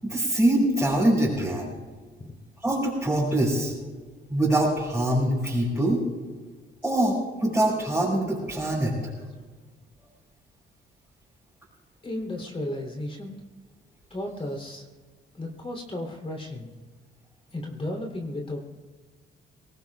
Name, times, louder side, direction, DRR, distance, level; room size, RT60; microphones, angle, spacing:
voice 1, 0.0-1.7 2.6-3.7 4.3-6.0 6.8-9.0, right 1 dB, 5° right, -8 dB, 6.0 m, -24 dB
voice 2, 12.0-13.3 14.1-14.8 15.3-16.7 17.5-18.7, left 1 dB, 30° left, 1 dB, 3.2 m, -34 dB
24.0 x 19.0 x 2.4 m, 1.4 s
cardioid pair, 90°, 20 cm